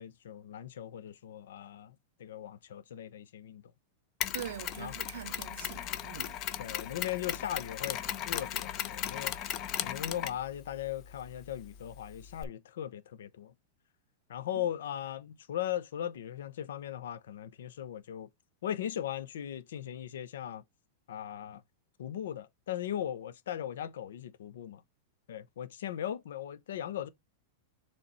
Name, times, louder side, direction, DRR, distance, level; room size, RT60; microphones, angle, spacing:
voice 1, 0.0-3.6 4.8-4.9 6.6-9.4 9.8-13.5 14.3-18.3 18.6-20.6 21.1-21.6 22.0-24.8 25.3-27.1, left 11 dB, 80° left, 0.8 m, -38 dB
Mechanisms, 4.2-12.4, left 10 dB, 30° left, 0.6 m, -37 dB
voice 2, 4.3-6.4, right 12 dB, 70° right, 0.4 m, -43 dB
7.2 x 3.3 x 4.0 m
supercardioid pair, 165°, 0 cm